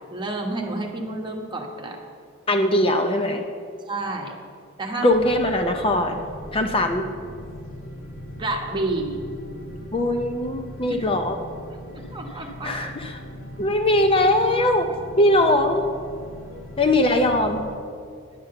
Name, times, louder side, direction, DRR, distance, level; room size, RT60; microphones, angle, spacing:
voice 1, 0.1-2.0 3.9-4.3 4.8-5.1 8.4-9.2 11.0-11.1 12.1-12.7 16.5-16.6, right 2 dB, 25° right, 1 dB, 1.3 m, -29 dB
voice 2, 2.5-3.4 5.0-6.2 6.5-7.1 9.9-11.4 12.6-13.2 13.6-14.9 15.2-15.8 16.8-17.6, left 1 dB, 25° left, 5 dB, 0.6 m, -20 dB
sound 1, 5.1-17.8, equal, 75° left, 1.9 m, -39 dB
10.5 x 7.5 x 6.7 m, 2.3 s
head